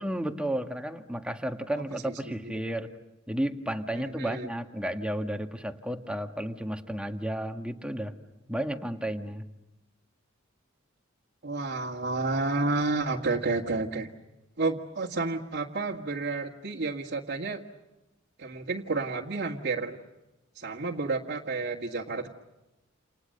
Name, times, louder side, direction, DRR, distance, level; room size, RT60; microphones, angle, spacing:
voice 1, 0.0-2.9 3.3-8.1 8.5-9.4, right 1 dB, 5° right, 5 dB, 1.8 m, -32 dB
voice 2, 2.3-2.6 3.9-4.5 11.4-14.1 14.6-17.6 18.4-20.0 20.6-22.3, right 3 dB, 55° right, -2 dB, 1.9 m, -30 dB
29.5 x 29.5 x 6.7 m, 0.99 s
head